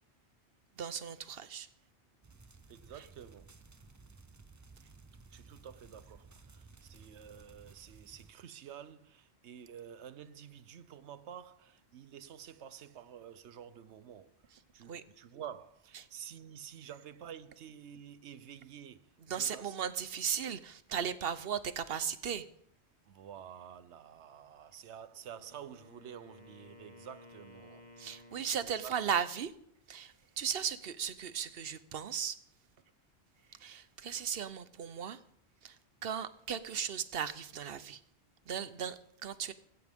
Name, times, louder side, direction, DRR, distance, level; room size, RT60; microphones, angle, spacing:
voice 1, 0.8-1.7 3.0-3.1 14.9-15.0 19.3-22.5 28.0-29.5 29.9-32.4 33.5-35.2 35.6-38.0 38.5-39.5, right 8 dB, 60° right, 1.0 m, -36 dB
sound 1, 2.2-8.3, right 4 dB, 25° right, 0.4 m, -57 dB
voice 2, 2.7-3.6 5.3-14.4 14.7-19.1 19.4-19.8 23.1-27.9 28.8-29.0, right 9 dB, 90° right, 1.0 m, -50 dB
Wind instrument woodwind instrument, 25.1-29.0, left 2 dB, 40° left, 1.4 m, -56 dB
16.0 x 14.5 x 3.6 m
omnidirectional pair, 1.1 m